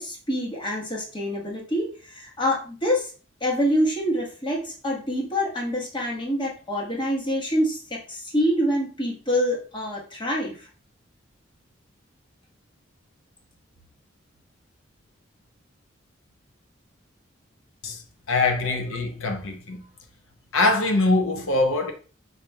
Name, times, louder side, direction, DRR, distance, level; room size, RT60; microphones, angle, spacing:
voice 1, 0.0-3.1 3.4-10.7 18.6-18.8, equal, 25° left, 1.2 m, -26 dB
voice 2, 18.3-19.8 20.5-21.9, left 2 dB, 85° left, 0.7 m, -23 dB
5.2 x 4.1 x 2.2 m
head